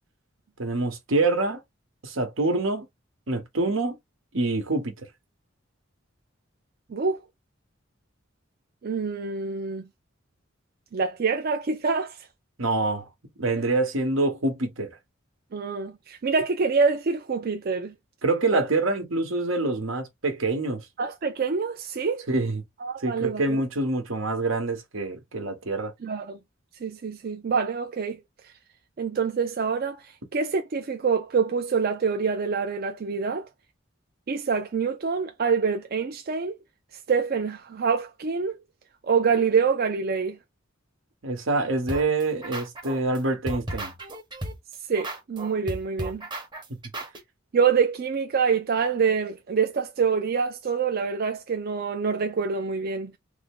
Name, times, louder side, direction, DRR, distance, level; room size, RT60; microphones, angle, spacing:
voice 1, 0.6-1.6 2.0-2.8 3.3-4.0 4.3-5.1 12.6-13.1 13.4-15.0 18.2-20.9 22.3-22.6 23.0-25.9 41.2-43.9, right 2 dB, 85° right, 1.1 m, -26 dB
voice 2, 8.8-9.9 10.9-12.2 15.5-17.9 18.5-18.6 21.0-22.3 22.8-23.6 26.0-26.4 26.8-28.2 29.0-33.5 34.3-36.6 37.1-38.6 39.0-40.4 44.9-46.2 47.5-53.1, right 5 dB, 50° right, 0.4 m, -26 dB
sound 1, 41.9-43.2 43.5-47.2, right 1 dB, 25° right, 0.9 m, -34 dB
3.5 x 2.1 x 3.6 m
head